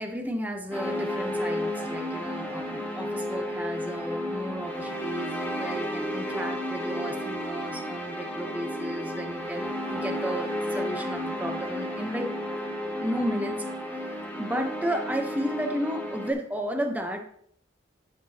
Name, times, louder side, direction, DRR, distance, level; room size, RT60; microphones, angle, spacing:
voice 1, 0.0-12.3 13.0-13.6 14.4-17.3, equal, 10° right, 3 dB, 0.9 m, -33 dB
sound 1, 0.7-16.3, equal, 10° left, 1.1 m, -32 dB
10.0 x 5.8 x 2.9 m, 0.66 s
head